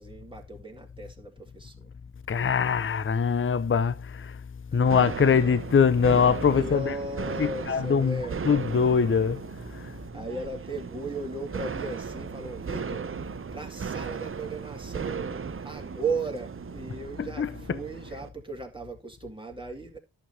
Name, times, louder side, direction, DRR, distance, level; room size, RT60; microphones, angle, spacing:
voice 1, 0.0-1.9 4.7-4.8 6.5-8.4 10.1-13.1 13.5-20.0, right 3 dB, 10° right, 2.2 m, -36 dB
voice 2, 2.3-4.4 4.7-6.9 7.4-9.4 17.2-17.5, left 6 dB, 25° left, 0.6 m, -23 dB
sound 1, 4.8-18.3, right 6 dB, 30° right, 0.5 m, -36 dB
11.0 x 7.4 x 2.7 m
cardioid pair, 45°, 46 cm